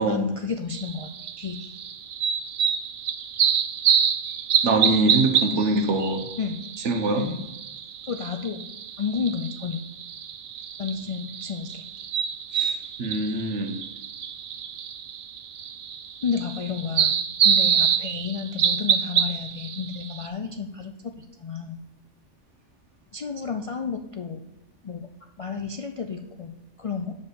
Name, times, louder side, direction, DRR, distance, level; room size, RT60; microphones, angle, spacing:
voice 1, 0.1-1.6 6.4-6.6 7.2-7.5 8.1-8.7 9.0-9.8 10.8-11.8 16.2-17.2 17.4-21.8 23.1-24.4 24.8-25.1 25.4-27.1, left 6 dB, 55° left, 5 dB, 0.4 m, -31 dB
sound 1, 0.7-20.3, right 8 dB, 60° right, 0.7 m, -27 dB
voice 2, 4.6-6.3 6.8-7.3 12.5-13.7, right 2 dB, 80° right, 6 dB, 1.3 m, -24 dB
6.9 x 5.4 x 6.9 m, 0.89 s
omnidirectional pair, 1.2 m